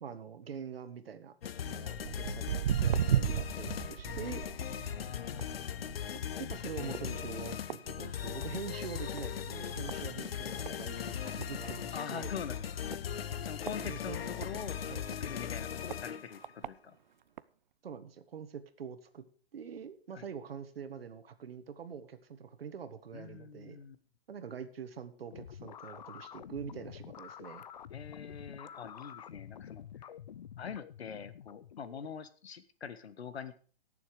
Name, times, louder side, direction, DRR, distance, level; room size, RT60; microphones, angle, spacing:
voice 1, 0.0-1.3 1.6-2.5 2.8-4.4 6.4-12.4 13.8-14.5 14.9-15.0 17.8-19.2 19.5-23.8 24.3-27.6, right 7 dB, 70° right, 10 dB, 1.7 m, -44 dB
sound 1, 1.4-16.5, left 9 dB, 70° left, 0.9 m, -39 dB
Walk footsteps, 2.0-8.7 9.0-9.3 9.9-10.0 10.7-10.8 11.1-11.2 11.4-11.5 12.1-12.3 12.9-14.5 15.1-15.2 15.9-16.0 16.4-16.7 17.4-17.5, right 10 dB, 50° right, 0.5 m, -34 dB
voice 2, 4.9-6.0 6.7-7.2 11.9-12.9 13.4-14.8 15.2-17.0 20.1-20.2 23.1-24.0 27.9-30.1 30.6-33.5, left 7 dB, 90° left, 12 dB, 1.6 m, -44 dB
sound 2, 25.3-32.1, left 9 dB, 50° left, 0.5 m, -49 dB
17.0 x 7.1 x 5.0 m, 0.41 s
hypercardioid pair, 170°, 31 cm